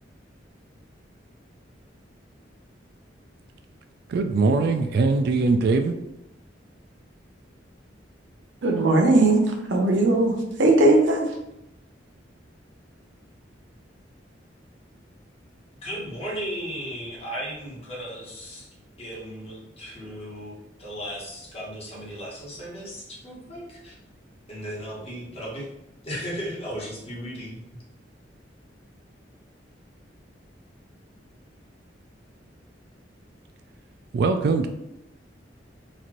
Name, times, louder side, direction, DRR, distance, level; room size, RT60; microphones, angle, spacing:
voice 1, 4.1-6.0 34.1-34.7, right 3 dB, 60° right, 7 dB, 0.3 m, -21 dB
voice 2, 8.6-11.3, right 2 dB, 85° right, 2 dB, 0.7 m, -19 dB
voice 3, 15.8-18.7 19.0-20.5 20.8-24.0 24.5-25.7 26.0-27.6, equal, 35° left, -5 dB, 1.2 m, -35 dB
4.2 x 2.5 x 3.0 m, 0.86 s
head